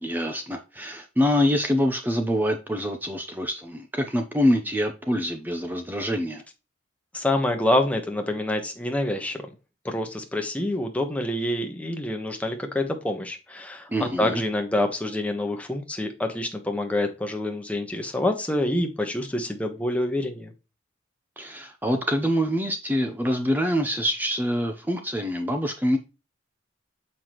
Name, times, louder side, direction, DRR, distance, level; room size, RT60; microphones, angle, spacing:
voice 1, 0.0-6.4 13.9-14.4 21.4-26.0, equal, 10° right, 0.7 m, -25 dB
voice 2, 7.1-9.5 9.8-20.5, left 1 dB, 5° left, 1.2 m, -27 dB
7.1 x 5.8 x 3.1 m
head